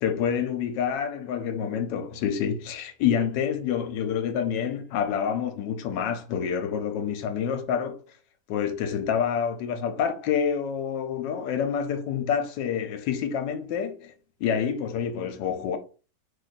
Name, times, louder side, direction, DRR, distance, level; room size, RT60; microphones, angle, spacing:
voice 1, 0.0-8.0 8.5-14.1 14.4-15.8, left 7 dB, 80° left, 1.2 m, -27 dB
3.1 x 2.3 x 4.0 m
omnidirectional pair, 1.9 m